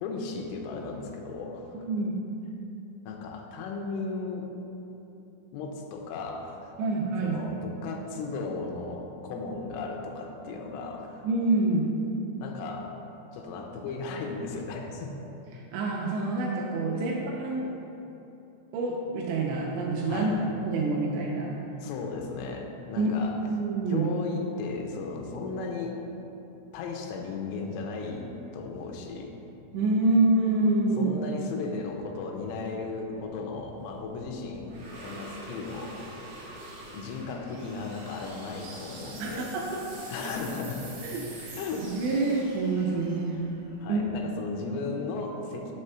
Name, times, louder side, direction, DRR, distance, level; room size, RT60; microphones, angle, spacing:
voice 1, 0.0-1.8 3.1-4.5 5.5-6.7 7.2-11.3 12.4-12.9 13.3-15.1 16.9-17.2 20.1-20.4 21.8-23.4 23.9-26.0 26.7-29.3 31.0-36.2 36.9-39.6 40.1-41.0 41.6-41.9 43.8-45.7, left 4 dB, 90° left, 2 dB, 3.2 m, -36 dB
voice 2, 1.7-2.2 6.8-7.4 11.2-11.9 15.5-17.7 18.7-20.3 20.6-21.6 23.0-23.1 23.5-24.1 29.7-31.1 39.2-39.8 41.0-43.4 43.9-44.1, right 2 dB, 85° right, -2 dB, 2.6 m, -27 dB
sound 1, 33.2-44.4, right 2 dB, 65° right, 1.6 m, -46 dB
7.6 x 3.3 x 5.5 m, 3.0 s
omnidirectional pair, 5.5 m